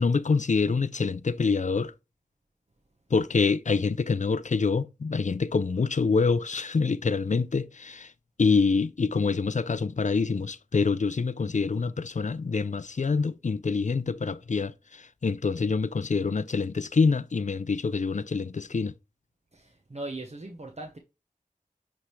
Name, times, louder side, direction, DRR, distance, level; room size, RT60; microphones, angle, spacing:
voice 1, 0.0-1.9 3.1-8.1 8.4-18.9, left 4 dB, 60° left, 0.4 m, -26 dB
voice 2, 19.5-21.0, right 2 dB, 50° right, 1.0 m, -39 dB
9.8 x 3.5 x 3.1 m
wide cardioid pair, 45°, 15 cm